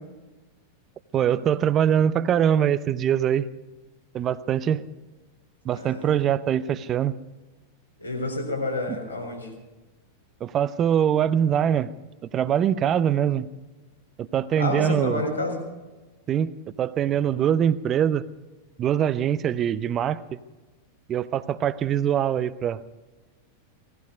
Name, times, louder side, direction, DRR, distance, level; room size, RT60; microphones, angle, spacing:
voice 1, 1.1-3.5 4.1-4.8 5.6-7.1 8.9-9.0 10.4-11.9 12.3-13.5 14.2-15.2 16.3-16.5 16.8-18.3 18.8-20.4 21.1-22.8, right 9 dB, 30° right, 16 dB, 0.6 m, -23 dB
voice 2, 5.7-6.1 8.0-9.5 14.6-15.6, left 2 dB, 85° left, -1 dB, 4.1 m, -29 dB
18.0 x 15.0 x 5.2 m, 1.2 s
figure-of-eight pair, 90°, 0 cm